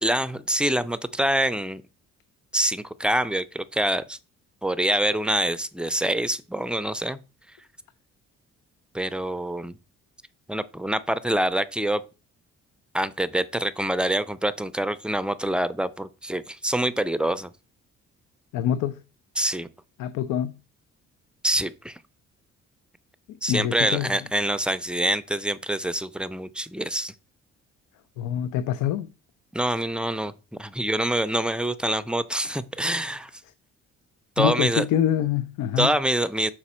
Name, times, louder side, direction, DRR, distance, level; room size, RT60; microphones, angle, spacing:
voice 1, 0.0-1.8 2.5-4.2 4.6-7.2 8.9-9.7 10.5-12.0 12.9-17.5 19.4-19.7 21.4-22.0 23.4-27.1 29.5-30.3 30.6-33.3 34.4-34.8 35.8-36.5, right 1 dB, 5° right, 0.4 m, -25 dB
voice 2, 18.5-19.0 20.0-20.6 23.3-24.1 28.2-29.1 34.4-35.9, left 10 dB, 90° left, 0.5 m, -25 dB
6.1 x 4.3 x 4.2 m
cardioid pair, 90°, 30 cm